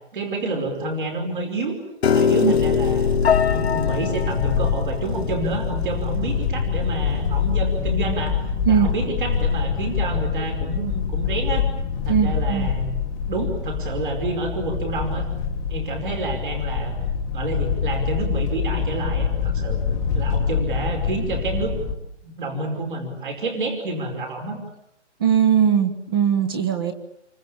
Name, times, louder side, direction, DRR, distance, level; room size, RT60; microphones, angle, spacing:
voice 1, 0.1-1.7 2.1-3.1 3.5-8.4 8.7-11.7 12.0-12.9 13.2-15.3 15.7-16.9 17.3-19.8 20.1-21.7 22.2-24.6, right 2 dB, 45° right, 3 dB, 5.1 m, -28 dB
Piano, 2.0-8.2, left 6 dB, 60° left, 1.5 m, -24 dB
sound 1, 2.5-21.9, left 6 dB, 10° left, 1.4 m, -25 dB
voice 2, 12.1-12.7 25.2-26.9, right 8 dB, 20° right, 10 dB, 1.4 m, -19 dB
27.5 x 24.5 x 8.7 m, 0.81 s
hypercardioid pair, 175°, 35 cm